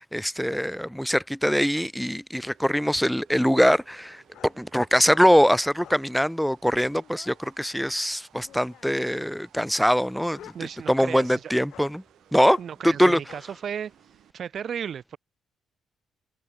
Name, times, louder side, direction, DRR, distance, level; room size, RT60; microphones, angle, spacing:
voice 1, 0.0-10.5 10.9-12.0 12.3-12.6 12.8-13.2, equal, ahead, 0.9 m, -23 dB
sound 1, 2.3-14.3, right 11 dB, 75° right, 7.3 m, -60 dB
sound 2, 4.3-4.6 5.0-5.3 5.8-6.1 6.6-7.4 8.4-9.0 9.7-11.2 11.7-11.9 12.5-12.7 13.3-13.5, left 11 dB, 75° left, 2.8 m, -49 dB
voice 2, 10.5-11.5 12.6-13.9 14.3-15.2, right 8 dB, 55° right, 2.2 m, -34 dB
cardioid pair, 90°, 0 cm